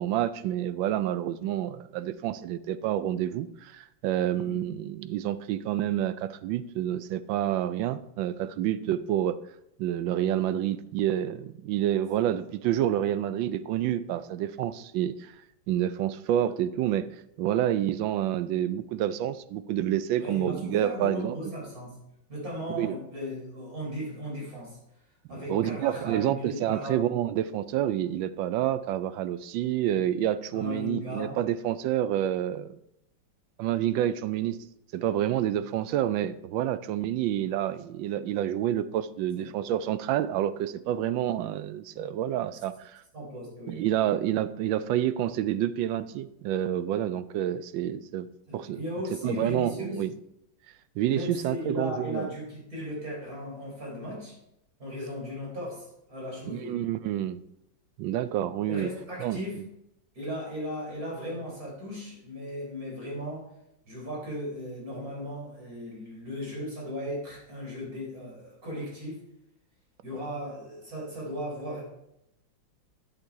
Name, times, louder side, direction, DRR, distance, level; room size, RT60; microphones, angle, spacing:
voice 1, 0.0-9.4 9.8-15.3 15.7-17.1 17.4-21.4 22.7-22.9 25.5-32.8 33.6-34.6 34.9-43.0 43.7-48.3 48.5-48.8 49.2-50.1 51.0-52.3 56.5-57.4 58.0-58.9 59.2-59.4, right 11 dB, 80° right, 14 dB, 1.3 m, -28 dB
voice 2, 20.2-21.9 22.3-24.8 25.3-27.0 30.5-31.4 39.4-39.5 43.1-43.8 48.5-50.0 51.0-54.4 54.8-56.8 58.7-59.6 60.1-63.5 63.9-69.2 70.0-71.8, equal, 45° right, -4 dB, 4.5 m, -36 dB
11.0 x 6.8 x 4.6 m, 0.81 s
omnidirectional pair, 2.1 m